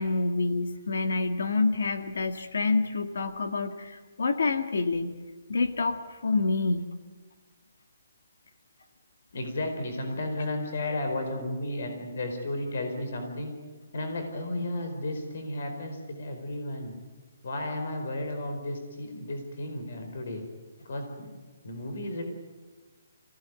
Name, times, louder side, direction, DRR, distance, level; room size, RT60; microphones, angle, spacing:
voice 1, 0.0-5.2 5.5-6.9, left 3 dB, 75° left, 8 dB, 1.8 m, -27 dB
voice 2, 9.3-13.5 13.9-16.9 17.4-20.4 20.9-21.3 21.6-22.2, left 1 dB, 50° left, 5 dB, 4.5 m, -33 dB
27.0 x 17.0 x 9.6 m, 1.3 s
hypercardioid pair, 175°, 0 cm